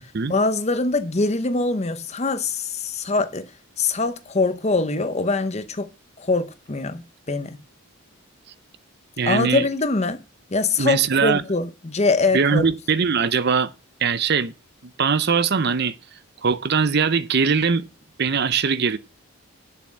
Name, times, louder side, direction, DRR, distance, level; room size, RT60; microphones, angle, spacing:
voice 1, 0.3-3.5 3.8-5.9 6.2-7.0 7.3-7.6 9.3-10.2 10.5-12.7, left 3 dB, 30° left, 0.7 m, -23 dB
voice 2, 9.2-9.7 10.8-11.4 12.3-13.7 14.0-14.5 15.0-16.0 16.4-17.8 18.2-19.0, right 5 dB, 50° right, 0.6 m, -21 dB
8.6 x 7.0 x 7.5 m
head